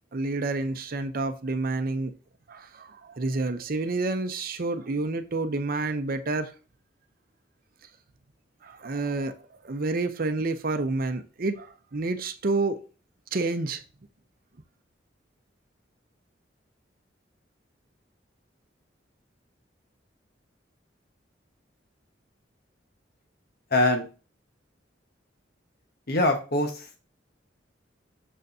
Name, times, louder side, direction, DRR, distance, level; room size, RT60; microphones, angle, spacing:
voice 1, 0.1-2.1 2.5-6.5 8.6-9.3 9.6-12.8 13.3-13.8, right 3 dB, 50° right, 0.7 m, -29 dB
voice 2, 23.7-24.1 26.1-26.9, left 1 dB, 55° left, 1.3 m, -23 dB
6.7 x 6.5 x 2.7 m
head